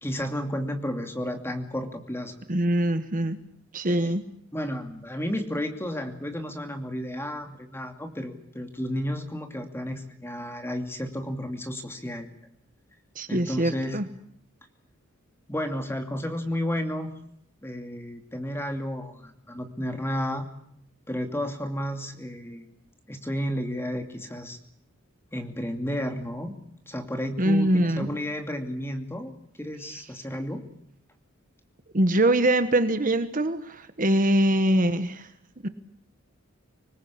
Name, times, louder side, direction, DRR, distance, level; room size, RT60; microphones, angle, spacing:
voice 1, 0.0-2.4 3.9-4.1 4.5-12.3 13.3-14.0 15.5-17.1 17.6-20.5 21.1-22.7 23.1-24.6 25.3-26.5 26.9-30.6, equal, 10° left, 5 dB, 2.6 m, -32 dB
voice 2, 2.5-3.4 3.7-4.2 13.1-14.0 27.4-28.1 31.9-35.3 35.6-35.7, right 1 dB, 40° right, 10 dB, 1.3 m, -23 dB
25.5 x 20.0 x 8.5 m, 0.71 s
head